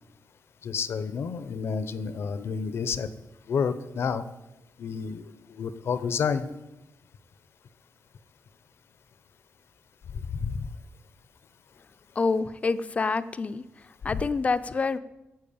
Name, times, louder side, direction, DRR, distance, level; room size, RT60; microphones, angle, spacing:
voice 1, 0.6-3.1 3.5-4.3 4.8-6.5 10.1-10.7 14.1-14.2, left 6 dB, 60° left, 13 dB, 0.7 m, -30 dB
voice 2, 12.2-15.0, left 4 dB, 30° left, 13 dB, 0.5 m, -27 dB
10.5 x 7.3 x 8.6 m, 1.0 s
wide cardioid pair, 160°, 5 cm